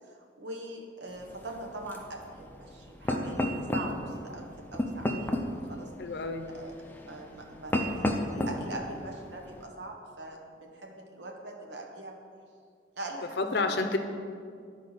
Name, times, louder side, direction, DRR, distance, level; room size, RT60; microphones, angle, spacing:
voice 1, 0.1-5.9 6.5-6.7 7.1-12.2 13.0-13.8, right 1 dB, 75° right, 2 dB, 1.1 m, -42 dB
sound 1, 1.1-9.6, left 1 dB, 10° left, 0.6 m, -34 dB
voice 2, 6.0-6.5 13.4-14.0, left 3 dB, 65° left, 6 dB, 0.6 m, -29 dB
11.5 x 4.7 x 4.1 m, 2.2 s
head